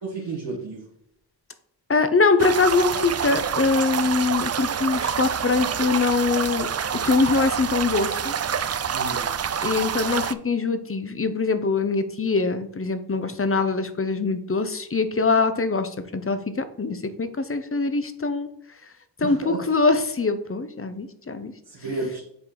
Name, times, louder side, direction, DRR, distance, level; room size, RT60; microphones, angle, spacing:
voice 1, 0.0-0.9 8.9-9.3 19.2-19.6 21.7-22.2, right 3 dB, 80° right, -7 dB, 1.9 m, -32 dB
voice 2, 1.9-8.3 9.6-18.5 19.2-21.5, left 4 dB, 30° left, 10 dB, 0.8 m, -23 dB
sound 1, 2.4-10.3, right 7 dB, 40° right, 0.4 m, -27 dB
7.7 x 4.5 x 3.9 m, 0.73 s
cardioid pair, 60°, 42 cm